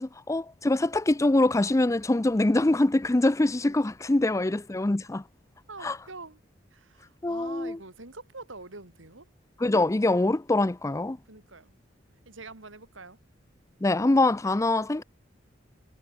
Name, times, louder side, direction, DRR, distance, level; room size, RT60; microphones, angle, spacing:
voice 1, 0.0-5.2 5.8-6.0 7.2-7.8 9.6-11.2 13.8-15.0, left 2 dB, 15° left, 0.5 m, -24 dB
voice 2, 5.7-6.4 6.7-9.3 11.3-11.7 12.3-13.2, right 3 dB, 85° right, 4.0 m, -45 dB
head